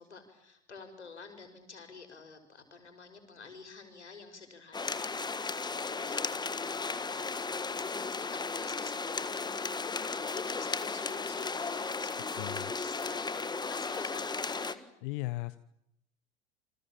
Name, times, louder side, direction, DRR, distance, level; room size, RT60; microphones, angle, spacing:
voice 1, 0.0-15.0, left 4 dB, 80° left, 7 dB, 5.9 m, -50 dB
sound 1, 4.7-14.8, left 4 dB, 10° left, 1.5 m, -35 dB
voice 2, 12.4-12.7 15.0-15.6, left 21 dB, 50° left, 14 dB, 1.1 m, -36 dB
28.5 x 25.5 x 7.5 m, 0.80 s
figure-of-eight pair, 80°, 34 cm